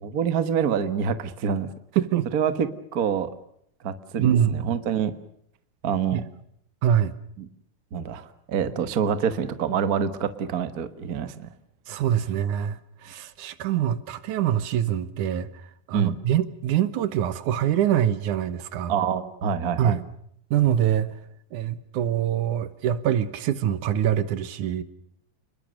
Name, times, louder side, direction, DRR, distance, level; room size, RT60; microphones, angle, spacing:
voice 1, 0.0-1.7 2.3-2.7 2.9-3.3 3.8-5.1 5.8-6.2 7.4-7.5 7.9-11.5 15.9-16.2 18.9-20.0, right 7 dB, 55° right, 11 dB, 1.0 m, -26 dB
voice 2, 2.0-2.3 4.2-4.7 6.1-6.2 6.8-7.1 11.9-15.5 15.9-18.9 19.8-20.0 20.5-21.2 21.5-24.8, right 10 dB, 70° right, 14 dB, 2.5 m, -24 dB
29.5 x 21.5 x 6.6 m, 0.70 s
omnidirectional pair, 3.8 m